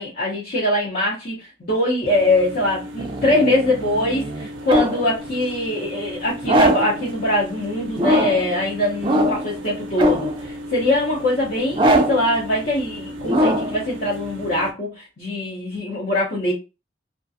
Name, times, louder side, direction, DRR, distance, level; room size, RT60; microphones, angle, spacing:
voice 1, 0.0-16.5, left 1 dB, 50° left, 0.7 m, -22 dB
sound 1, 2.1-14.7, equal, 80° right, 0.5 m, -35 dB
sound 2, 3.0-5.1 6.4-7.0 8.0-8.5 9.0-9.6 10.0-10.4 11.7-12.3 13.3-13.8, equal, 25° right, 0.3 m, -20 dB
2.4 x 2.2 x 2.6 m
head